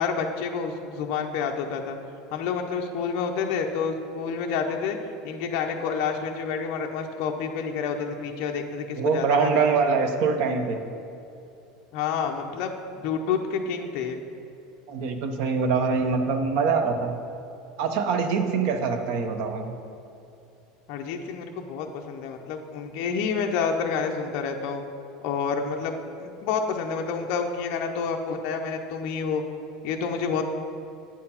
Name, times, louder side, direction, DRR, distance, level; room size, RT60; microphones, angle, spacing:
voice 1, 0.0-2.0 2.3-5.0 5.2-9.7 11.9-12.7 13.0-14.2 20.9-24.8 25.2-29.4 29.8-30.4, left 6 dB, 50° left, 2 dB, 0.5 m, -29 dB
voice 2, 9.0-10.8 14.9-17.1 17.8-19.7, right 5 dB, 50° right, 6 dB, 0.7 m, -24 dB
8.7 x 4.5 x 5.6 m, 2.7 s
cardioid pair, 175°, 2 cm